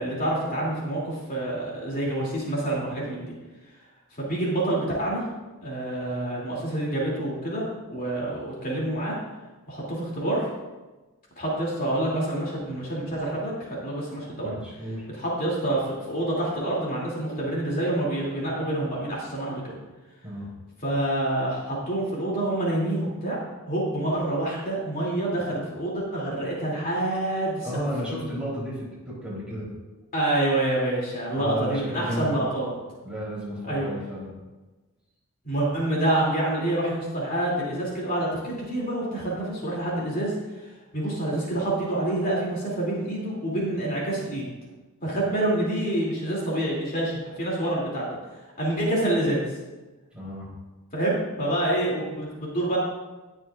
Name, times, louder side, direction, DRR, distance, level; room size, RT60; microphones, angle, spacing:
voice 1, 0.0-3.3 4.1-5.2 5.6-9.1 9.7-10.5 11.4-14.5 15.1-19.8 20.8-23.4 23.6-27.7 30.1-32.8 33.7-33.9 35.4-40.3 40.6-44.5 45.0-48.2 48.6-49.4 50.9-52.8, right 1 dB, 40° left, -5 dB, 2.8 m, -27 dB
voice 2, 14.4-15.1 20.2-20.5 27.6-29.7 31.4-32.3 33.0-34.3 50.1-50.5, equal, 5° right, -7 dB, 3.6 m, -32 dB
19.0 x 6.6 x 2.5 m, 1.2 s
head